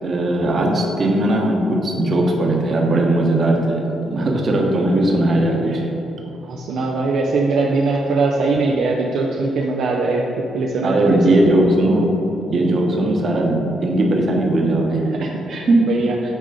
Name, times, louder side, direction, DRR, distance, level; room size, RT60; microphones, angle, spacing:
voice 1, 0.0-5.7 10.8-12.1 12.5-15.0 15.7-15.8, right 1 dB, 50° right, 1 dB, 1.2 m, -18 dB
voice 2, 6.4-10.3 10.5-11.2 15.1-16.1, right 3 dB, 75° right, -1 dB, 0.6 m, -21 dB
9.0 x 3.7 x 5.0 m, 2.9 s
cardioid pair, 90°, 0 cm